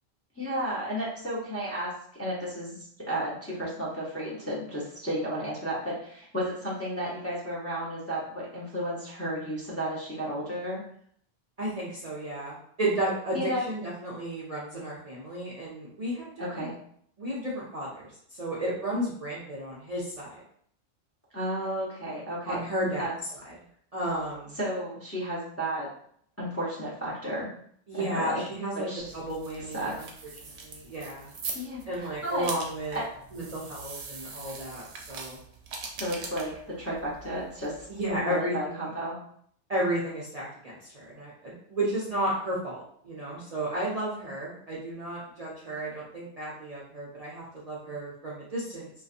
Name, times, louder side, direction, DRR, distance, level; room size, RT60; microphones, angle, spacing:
voice 1, 0.4-1.9 2.2-10.8 13.3-13.6 16.4-16.7 21.3-23.1 24.6-25.9 26.4-27.5 27.9-28.4 28.7-29.0 29.7-30.0 31.5-32.5 32.9-33.0 36.0-39.2, equal, 20° left, -7 dB, 0.5 m, -33 dB
voice 2, 11.6-16.7 17.2-20.4 22.5-23.1 23.4-23.5 23.9-24.6 27.9-28.9 29.1-30.1 30.4-31.3 31.9-33.0 33.3-35.4 37.9-38.9 39.7-48.9, right 1 dB, 45° right, -6 dB, 0.5 m, -33 dB
sound 1, 29.0-38.2, right 4 dB, 80° right, 0.8 m, -42 dB
2.6 x 2.2 x 2.4 m, 0.64 s
omnidirectional pair, 1.1 m